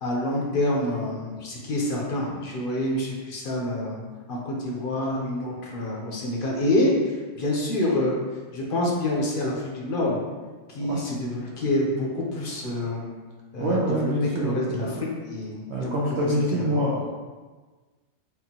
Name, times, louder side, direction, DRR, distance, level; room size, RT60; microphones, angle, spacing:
voice 1, 0.0-4.0 4.3-8.2 8.5-10.2 10.7-13.1 13.5-16.7, left 1 dB, 50° left, -3 dB, 0.8 m, -27 dB
voice 2, 13.6-15.0 15.7-17.2, equal, 65° right, -5 dB, 0.9 m, -26 dB
5.4 x 2.5 x 2.8 m, 1.4 s
omnidirectional pair, 1.3 m